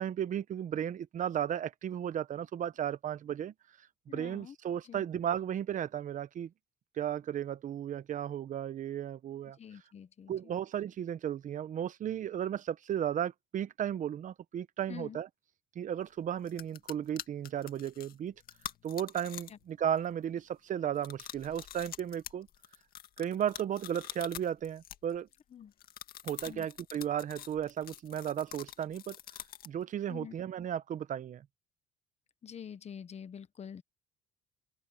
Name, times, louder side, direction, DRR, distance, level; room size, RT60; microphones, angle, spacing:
voice 1, 0.0-3.5 4.1-6.5 7.0-9.6 10.3-15.3 15.7-18.3 18.8-22.5 23.2-25.3 26.2-29.2 29.6-31.4, right 9 dB, 50° right, 0.9 m, -35 dB
voice 2, 4.1-4.5 4.8-5.0 9.6-10.3 14.9-15.2 19.5-19.6 25.5-25.7 26.5-26.7 30.1-30.3 32.4-33.8, left 8 dB, 40° left, 1.3 m, -46 dB
sound 1, 16.1-16.2 16.4-19.7 20.0-20.4 20.9-25.4 25.8-29.8, left 11 dB, 60° left, 1.9 m, -46 dB
open air
cardioid pair, 110°, 17 cm